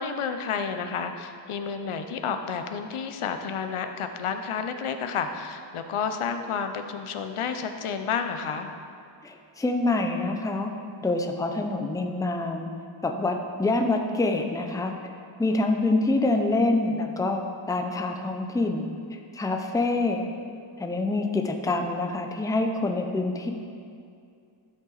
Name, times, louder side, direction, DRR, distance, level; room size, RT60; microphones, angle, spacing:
voice 1, 0.0-8.7 13.8-14.0, left 6 dB, 80° left, 7 dB, 0.7 m, -31 dB
voice 2, 9.2-10.7 11.0-12.7 13.0-14.9 15.4-17.4 17.7-20.3 20.8-23.5, left 2 dB, 5° left, 3 dB, 0.5 m, -26 dB
13.0 x 5.5 x 4.0 m, 2.4 s
wide cardioid pair, 145°, 50 cm